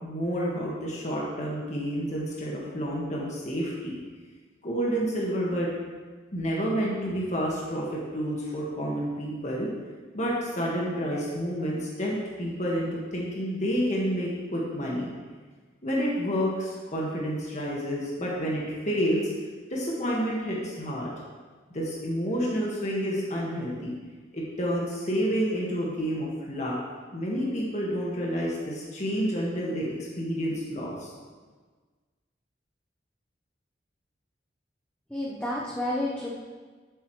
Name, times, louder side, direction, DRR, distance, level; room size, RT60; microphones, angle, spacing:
voice 1, 0.0-4.0 4.6-5.7 6.3-9.7 10.1-15.1 15.8-19.3 19.7-21.1 21.7-23.9 24.3-26.7 27.1-31.1, equal, 40° left, -4 dB, 1.8 m, -29 dB
voice 2, 35.1-36.3, left 1 dB, 5° left, -5 dB, 1.0 m, -30 dB
12.5 x 7.6 x 3.2 m, 1.4 s
head